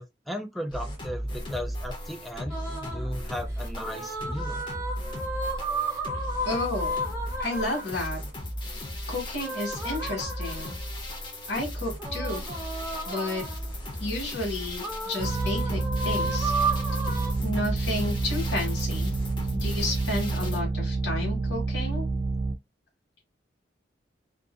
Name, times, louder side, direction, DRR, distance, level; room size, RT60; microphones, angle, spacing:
voice 1, 0.0-4.6, equal, ahead, 0.3 m, -36 dB
sound 1, 0.7-20.6, equal, 25° left, 0.7 m, -36 dB
sound 2, 2.5-3.1 3.8-8.0 9.3-10.9 12.0-13.7 14.8-17.3, right 2 dB, 15° right, 0.7 m, -33 dB
voice 2, 6.4-7.0 7.4-8.2 9.1-11.2 11.5-12.4 13.0-13.4 14.0-16.9 17.4-19.1 19.5-22.1, left 2 dB, 70° left, 1.3 m, -32 dB
sound 3, 15.2-22.6, right 3 dB, 80° right, 0.4 m, -28 dB
2.5 x 2.4 x 2.4 m
head